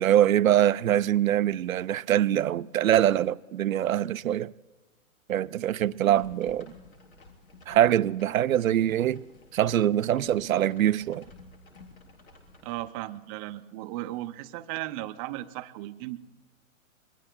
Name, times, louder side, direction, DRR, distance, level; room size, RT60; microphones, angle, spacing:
voice 1, 0.0-4.5 5.3-6.7 7.7-9.2 9.5-11.2, right 11 dB, 85° right, 0.6 m, -23 dB
sound 1, 6.1-12.8, left 3 dB, 90° left, 3.8 m, -53 dB
voice 2, 12.6-16.2, right 16 dB, 25° right, 0.6 m, -36 dB
26.5 x 22.0 x 2.2 m
hypercardioid pair, 130°, 40 cm